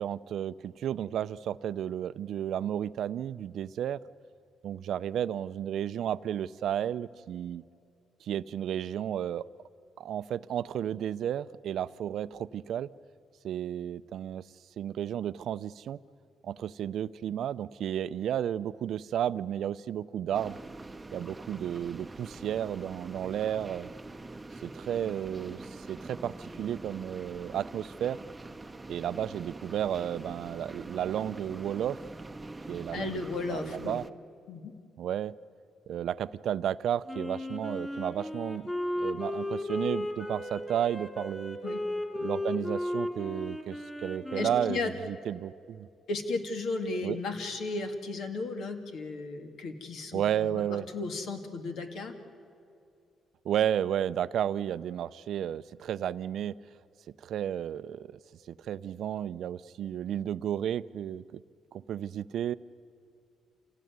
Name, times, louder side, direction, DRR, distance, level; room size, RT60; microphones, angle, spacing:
voice 1, 0.0-4.0 4.6-7.6 8.2-9.5 10.0-12.9 13.4-14.5 14.8-16.0 16.4-20.6 21.1-23.9 24.6-28.2 28.9-32.0 32.7-33.2 33.5-34.0 35.0-35.3 35.9-38.7 39.0-41.6 42.1-45.9 47.0-47.2 50.1-50.9 53.4-56.5 57.2-58.1 58.5-61.4 61.7-62.5, right 10 dB, 70° right, 16 dB, 0.5 m, -32 dB
sound 1, 20.3-34.1, right 2 dB, 15° right, 0.8 m, -44 dB
voice 2, 32.9-34.0 34.5-34.7 41.6-41.8 44.3-44.9 46.1-50.2 50.5-52.1, left 3 dB, 70° left, 6 dB, 2.2 m, -35 dB
Wind instrument woodwind instrument, 37.1-45.2, left 1 dB, 10° left, 3.5 m, -35 dB
27.0 x 16.5 x 9.5 m, 2.5 s
cardioid pair, 90°, 0 cm